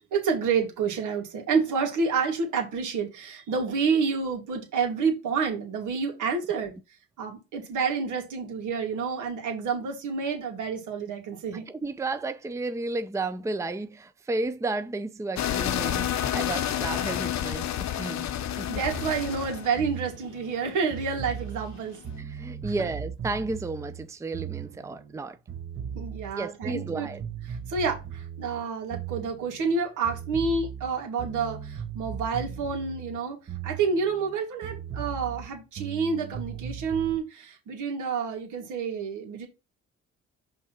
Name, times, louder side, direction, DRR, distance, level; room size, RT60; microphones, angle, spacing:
voice 1, 0.1-6.7 7.2-11.7 18.7-22.0 22.6-22.9 25.9-27.1 27.7-33.4 33.6-39.5, right 5 dB, 80° right, 2.5 m, -29 dB
voice 2, 11.7-18.7 22.2-25.4 26.4-27.2, right 2 dB, 10° right, 0.5 m, -33 dB
sound 1, 15.4-22.1, left 10 dB, 65° left, 0.8 m, -30 dB
sound 2, 18.9-25.2 25.5-29.8 30.0-34.3 34.6-37.2, right 8 dB, 40° right, 1.1 m, -38 dB
5.6 x 3.6 x 5.9 m
cardioid pair, 90°, 30 cm